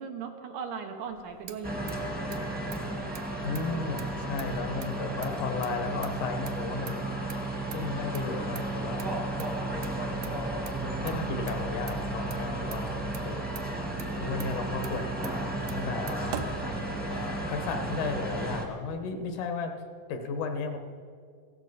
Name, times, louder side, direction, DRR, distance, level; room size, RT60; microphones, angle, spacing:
voice 1, 0.0-2.4 12.3-12.6, right 6 dB, 90° right, 4 dB, 2.7 m, -39 dB
Motor vehicle (road), 1.1-17.3, right 8 dB, 75° right, 1.6 m, -46 dB
sound 1, 1.6-18.6, right 2 dB, 10° right, 0.5 m, -33 dB
voice 2, 3.4-7.1 7.7-9.1 9.4-9.8 11.0-13.4 14.1-16.5 17.1-19.8 20.1-20.8, left 4 dB, 90° left, 6 dB, 2.6 m, -34 dB
16.0 x 13.5 x 4.1 m, 2.1 s
omnidirectional pair, 3.5 m